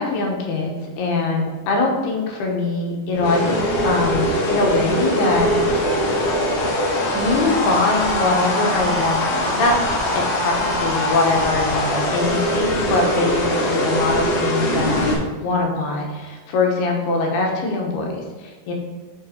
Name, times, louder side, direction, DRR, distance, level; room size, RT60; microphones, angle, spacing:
voice 1, 0.0-5.9 7.1-9.8 10.1-18.7, left 3 dB, 90° left, 1 dB, 3.2 m, -22 dB
sound 1, 3.1-15.1, equal, 70° left, 3.1 m, -22 dB
7.4 x 5.2 x 4.4 m, 1.4 s
omnidirectional pair, 4.4 m